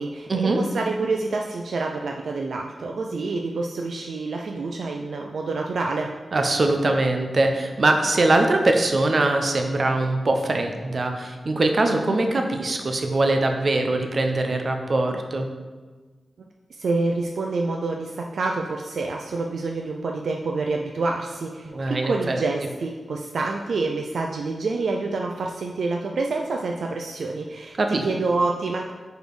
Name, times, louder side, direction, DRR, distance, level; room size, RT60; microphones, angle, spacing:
voice 1, 0.0-6.1 16.7-28.9, right 3 dB, 80° right, 1 dB, 0.4 m, -27 dB
voice 2, 6.3-15.5 21.7-22.4 27.8-28.1, right 2 dB, 55° right, 4 dB, 0.7 m, -22 dB
5.1 x 4.2 x 4.7 m, 1.4 s
cardioid pair, 70°, 0 cm